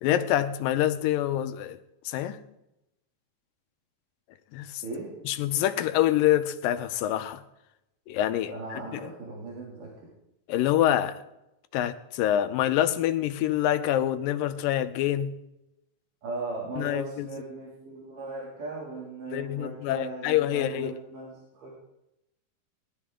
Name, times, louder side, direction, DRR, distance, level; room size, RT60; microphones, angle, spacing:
voice 1, 0.0-1.8 2.1-2.4 4.5-4.8 5.3-7.4 8.1-9.1 10.5-11.2 11.7-15.3 16.8-17.3 19.3-20.9, left 12 dB, 85° left, 2.4 m, -26 dB
voice 2, 8.5-9.9 16.2-21.7, right 3 dB, 70° right, 4.1 m, -38 dB
20.5 x 12.5 x 3.7 m
omnidirectional pair, 4.0 m